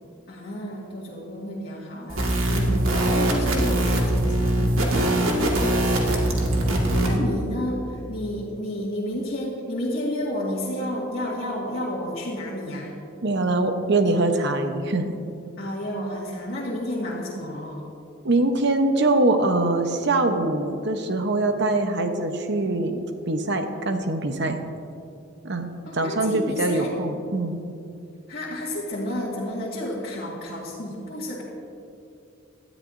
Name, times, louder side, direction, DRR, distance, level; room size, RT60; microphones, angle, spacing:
voice 1, 0.3-6.2 6.8-12.9 15.6-17.8 25.9-26.9 28.3-31.4, left 1 dB, 50° left, -7 dB, 2.0 m, -31 dB
sound 1, 2.1-7.2, right 1 dB, 90° right, 2.0 m, -22 dB
voice 2, 2.6-3.1 7.1-7.4 13.2-15.1 18.2-24.6 25.4-27.6, right 2 dB, 60° right, 6 dB, 1.0 m, -23 dB
18.5 x 12.0 x 2.7 m, 2.6 s
head